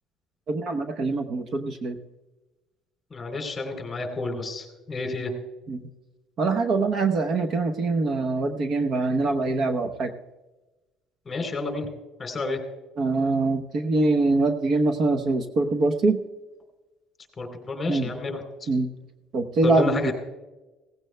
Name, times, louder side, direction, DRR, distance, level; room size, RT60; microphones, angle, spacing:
voice 1, 0.5-2.0 5.7-5.9 6.4-10.1 13.0-16.2 17.9-18.1 18.7-18.9 19.3-20.1, right 3 dB, 45° right, 7 dB, 0.9 m, -24 dB
voice 2, 3.1-5.3 11.3-11.9 12.2-12.6 17.4-18.7 19.8-20.1, left 3 dB, 20° left, 5 dB, 3.5 m, -30 dB
17.5 x 15.5 x 2.3 m, 1.1 s
cardioid pair, 135°, 0 cm